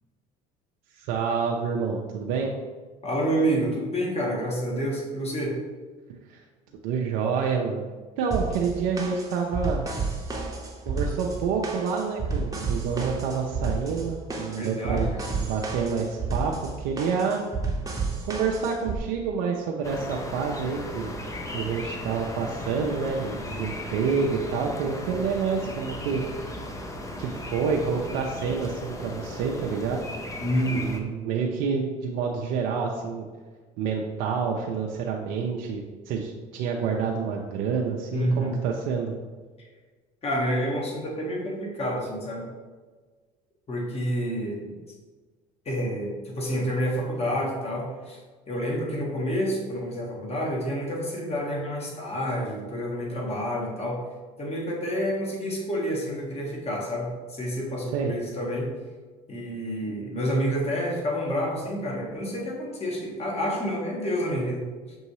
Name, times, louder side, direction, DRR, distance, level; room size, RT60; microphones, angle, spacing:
voice 1, 0.9-2.5 6.3-6.4 6.8-7.8 8.2-9.9 10.9-15.1 15.4-17.4 18.2-21.1 21.5-26.2 27.2-30.0 30.7-33.2 33.8-39.1 57.9-58.1, right 5 dB, 70° right, 0 dB, 0.5 m, -28 dB
voice 2, 3.0-5.5 14.5-15.2 30.4-30.9 38.1-38.6 40.2-42.5 43.7-44.7 45.6-48.2 48.5-54.0 54.4-58.7 59.3-65.0, equal, 35° left, -2 dB, 1.4 m, -28 dB
sound 1, 8.3-19.0, right 4 dB, 20° right, 0.9 m, -31 dB
sound 2, 19.8-31.0, left 1 dB, 15° left, 0.6 m, -36 dB
6.1 x 2.7 x 3.0 m, 1.4 s
hypercardioid pair, 75°, 19 cm